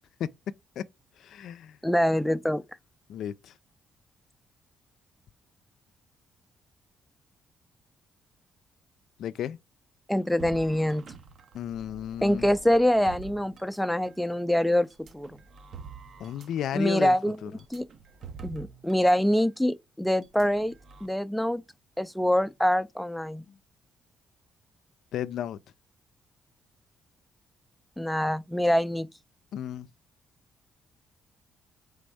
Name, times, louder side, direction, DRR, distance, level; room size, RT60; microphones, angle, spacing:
voice 1, 1.2-1.8 3.1-3.5 9.2-9.6 11.5-12.5 16.2-17.1 17.4-17.5 23.5-23.6 25.1-25.6 29.5-29.9, left 10 dB, 75° left, 0.3 m, -33 dB
voice 2, 1.8-2.6 10.1-11.0 12.2-14.9 15.1-15.3 16.7-17.4 17.7-17.9 18.4-20.7 21.0-21.6 22.0-23.4 28.0-29.1, equal, 5° left, 0.4 m, -25 dB
sound 1, 10.4-14.3 14.9-19.1 19.4-19.6 20.2-21.1, right 6 dB, 60° right, 0.7 m, -47 dB
4.1 x 3.4 x 3.4 m
cardioid pair, 90°, 0 cm